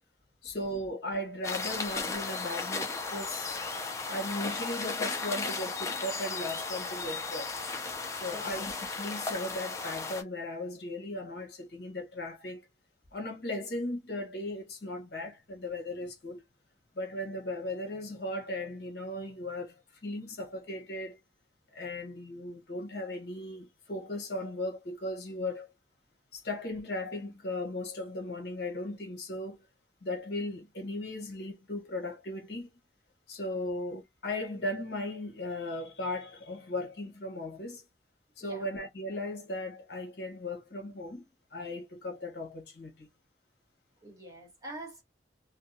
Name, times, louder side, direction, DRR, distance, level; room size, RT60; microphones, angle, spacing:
voice 1, 0.4-3.6 4.1-7.6 8.1-12.7 13.1-16.4 16.9-21.2 21.7-25.7 26.3-29.7 30.0-32.7 33.3-37.8 38.4-41.2 41.5-43.1, left 1 dB, 65° left, 1.0 m, -37 dB
sound 1, 1.4-10.2, left 4 dB, 15° left, 0.4 m, -35 dB
voice 2, 8.2-8.6 33.6-33.7 38.4-38.7 44.0-45.0, right 1 dB, 20° right, 1.1 m, -46 dB
2.6 x 2.1 x 2.6 m
head